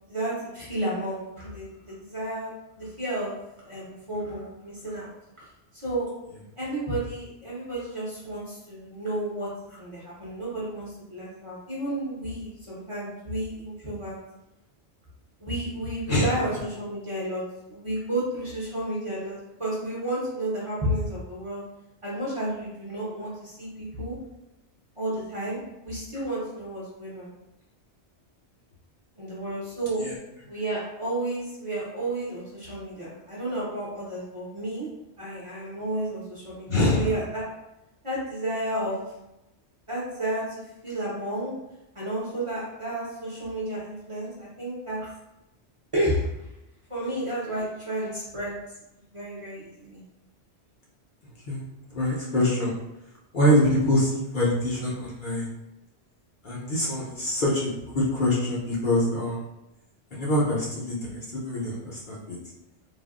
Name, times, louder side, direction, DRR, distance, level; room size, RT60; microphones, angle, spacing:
voice 1, 0.1-2.5 2.8-3.4 3.6-5.5 5.7-6.1 6.6-14.2 15.4-17.4 17.7-21.6 22.0-24.2 25.0-27.3 29.2-30.0 30.5-34.9 35.2-37.4 38.0-39.0 39.9-40.5 40.8-41.5 41.9-45.1 45.9-46.5 46.9-48.5 49.1-50.0, right 1 dB, 35° right, -8 dB, 0.7 m, -32 dB
voice 2, 36.7-37.1 51.5-51.6 51.9-52.8 53.3-55.5 56.4-57.7 57.9-59.4 60.1-62.4, left 1 dB, 50° left, -6 dB, 0.8 m, -24 dB
3.4 x 2.2 x 2.4 m, 0.92 s
omnidirectional pair, 1.2 m